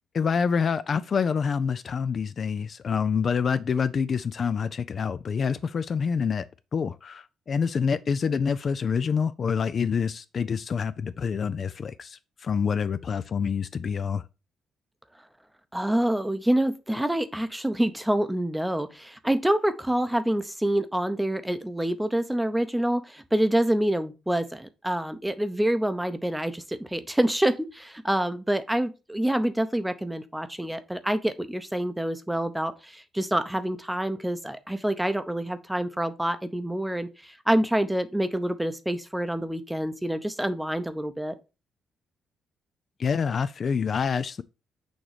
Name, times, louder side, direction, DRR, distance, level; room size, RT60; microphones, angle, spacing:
voice 1, 0.1-6.5 6.7-14.2 43.0-44.4, left 6 dB, 50° left, 0.3 m, -27 dB
voice 2, 15.7-41.3, right 1 dB, 5° right, 0.7 m, -27 dB
6.3 x 3.0 x 4.9 m
cardioid pair, 90°, 0 cm